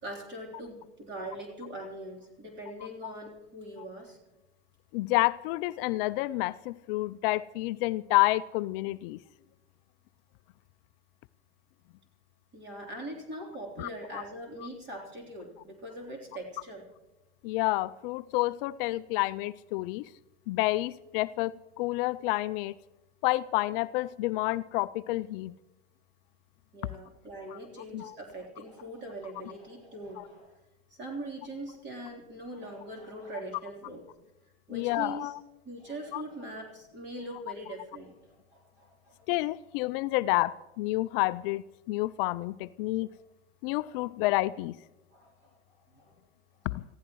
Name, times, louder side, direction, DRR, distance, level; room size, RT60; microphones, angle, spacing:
voice 1, 0.0-4.2 12.5-16.9 26.7-30.6 30.9-34.0 34.7-35.3 35.6-39.2 43.9-44.0 45.1-46.1, right 1 dB, 30° right, 3.5 m, -42 dB
voice 2, 4.9-9.2 13.8-14.2 17.4-20.1 20.5-21.5 21.8-22.7 23.2-25.5 27.5-27.6 27.9-28.1 30.2-30.3 34.7-35.4 36.1-36.2 39.3-43.1 43.6-44.8 46.7-46.8, left 19 dB, 55° left, 0.5 m, -29 dB
26.5 x 15.5 x 3.1 m
hypercardioid pair, 105°, 35 cm